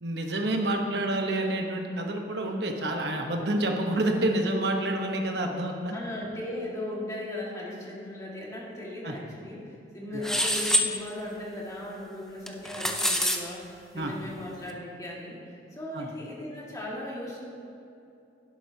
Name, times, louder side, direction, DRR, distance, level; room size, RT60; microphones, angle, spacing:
voice 1, 0.0-6.0 9.0-9.1 13.9-14.1 15.9-16.1, right 1 dB, 70° right, 2 dB, 1.1 m, -28 dB
voice 2, 5.9-17.4, left 1 dB, 20° left, -5 dB, 1.9 m, -37 dB
sound 1, 10.2-10.9 12.5-13.4, equal, 5° left, 0.5 m, -25 dB
11.5 x 11.0 x 2.8 m, 2.7 s
head